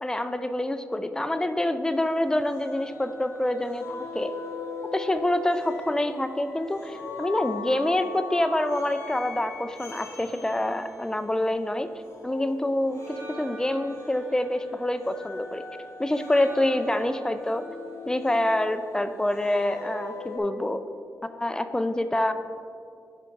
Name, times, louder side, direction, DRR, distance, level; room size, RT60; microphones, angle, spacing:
voice 1, 0.0-3.9 4.1-4.3 4.9-11.9 12.2-15.6 16.0-17.6 18.1-20.8 21.2-22.3, left 1 dB, 10° left, 9 dB, 0.4 m, -26 dB
sound 1, 1.9-11.7 12.0-20.4, left 3 dB, 50° left, 1.4 m, -41 dB
11.0 x 4.6 x 3.9 m, 2.4 s
wide cardioid pair, 120°, 6 cm